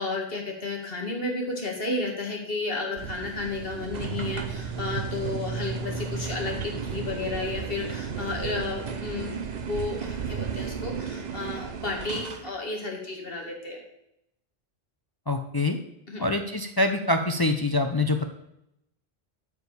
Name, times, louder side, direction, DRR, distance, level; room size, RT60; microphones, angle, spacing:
voice 1, 0.0-13.8 16.1-16.2, left 3 dB, 65° left, 0 dB, 2.5 m, -32 dB
sound 1, 3.0-12.1, right 8 dB, 80° right, 1.0 m, -37 dB
sound 2, 3.9-12.5, right 5 dB, 45° right, 0.9 m, -36 dB
voice 2, 15.3-15.8 16.2-18.2, left 2 dB, 25° left, 5 dB, 0.6 m, -25 dB
12.0 x 4.9 x 6.9 m, 0.81 s
omnidirectional pair, 1.0 m